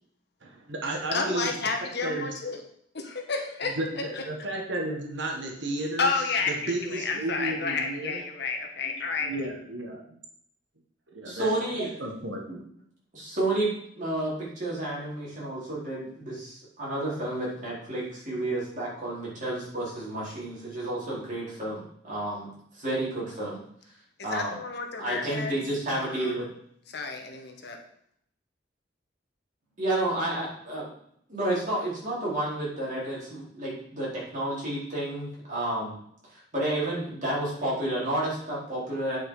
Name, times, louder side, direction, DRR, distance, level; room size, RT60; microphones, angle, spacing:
voice 1, 0.4-1.6 2.0-2.3 3.6-8.2 9.2-10.0 11.2-11.5 12.0-12.6, right 2 dB, 75° right, 0 dB, 1.6 m, -33 dB
voice 2, 1.1-2.6 2.9-4.2 6.0-9.3 24.3-25.5 26.0-26.3 26.9-27.8, left 4 dB, 60° left, 3 dB, 1.5 m, -31 dB
voice 3, 11.4-11.9 13.1-13.7 14.0-22.5 22.7-23.6 24.2-24.6 25.0-26.5 29.8-30.9 31.3-36.0 36.3-39.2, right 1 dB, 45° right, -6 dB, 4.4 m, -31 dB
9.1 x 5.9 x 5.0 m, 0.68 s
head